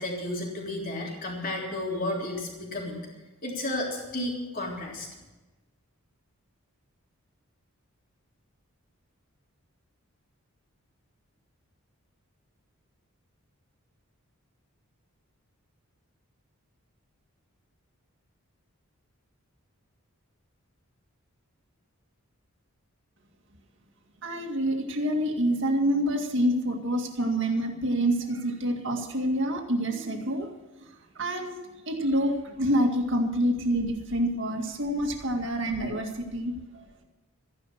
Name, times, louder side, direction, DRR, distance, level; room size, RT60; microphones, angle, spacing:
voice 1, 0.0-3.0 3.4-5.1, left 1 dB, 40° left, -1 dB, 3.5 m, -32 dB
voice 2, 24.2-30.5 31.2-31.5 31.9-36.8, equal, 55° right, 3 dB, 2.1 m, -27 dB
14.0 x 11.0 x 6.5 m, 1.1 s
head